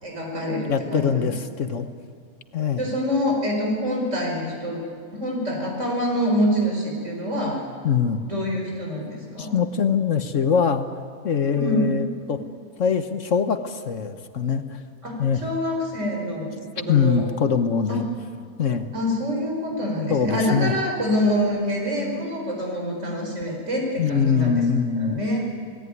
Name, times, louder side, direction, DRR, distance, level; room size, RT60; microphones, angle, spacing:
voice 1, 0.0-1.3 2.8-4.8 5.1-7.6 8.2-9.5 11.5-11.9 15.0-16.5 16.8-17.2 17.9-18.0 18.9-24.6 25.0-25.5, equal, 55° right, 0 dB, 5.1 m, -26 dB
voice 2, 0.7-1.9 2.5-2.9 7.8-8.3 9.4-10.9 11.2-12.4 12.8-14.8 15.2-15.4 16.9-18.0 18.6-18.9 20.1-20.7 24.0-25.2, left 6 dB, 60° left, 9 dB, 1.4 m, -23 dB
28.5 x 18.0 x 9.5 m, 2.3 s
omnidirectional pair, 1.4 m